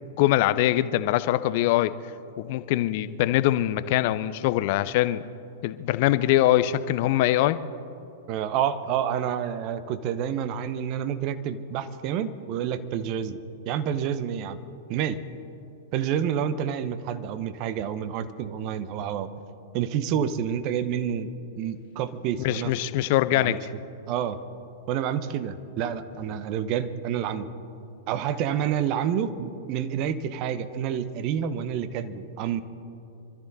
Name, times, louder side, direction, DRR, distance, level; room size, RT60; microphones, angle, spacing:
voice 1, 0.2-1.9 2.4-5.2 5.6-7.6 22.4-23.6, left 14 dB, 50° left, 15 dB, 0.6 m, -23 dB
voice 2, 8.3-13.4 13.7-14.6 14.9-15.2 15.9-19.3 19.7-22.7 23.3-23.6 24.1-24.4 24.9-27.5 28.1-32.6, right 9 dB, 40° right, 12 dB, 1.0 m, -28 dB
25.5 x 13.5 x 4.1 m, 2.8 s
figure-of-eight pair, 100°, 0 cm